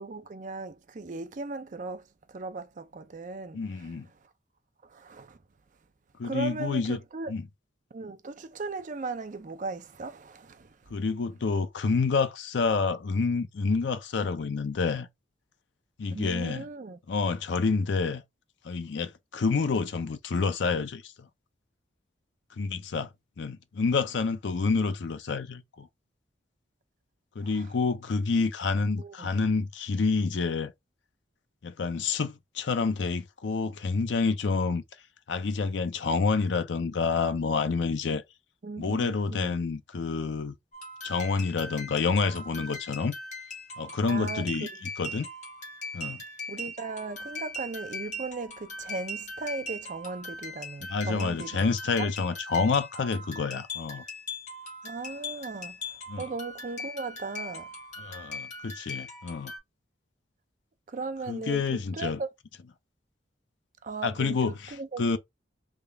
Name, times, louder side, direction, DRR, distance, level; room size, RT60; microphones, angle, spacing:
voice 1, 0.0-2.0 2.3-3.6 4.9-5.4 6.2-7.3 7.9-10.7 16.1-17.0 29.0-29.3 38.6-39.5 44.1-44.5 46.5-51.7 52.0-52.1 53.5-53.6 54.8-55.8 56.2-57.7 60.9-62.3 63.8-65.0, right 3 dB, 40° right, 0.4 m, -37 dB
voice 2, 3.5-4.1 6.2-7.0 7.3-7.5 10.9-15.1 16.0-16.7 17.1-18.2 18.6-21.3 22.6-23.1 23.4-25.9 27.4-30.7 31.6-34.8 35.3-38.2 38.8-40.5 41.0-43.1 43.8-45.3 45.9-46.2 50.8-54.0 56.1-56.3 58.0-59.5 61.3-62.2 64.0-65.2, left 4 dB, 65° left, 0.5 m, -28 dB
sound 1, 40.7-59.6, left 2 dB, 40° left, 1.2 m, -40 dB
3.6 x 2.3 x 3.3 m
head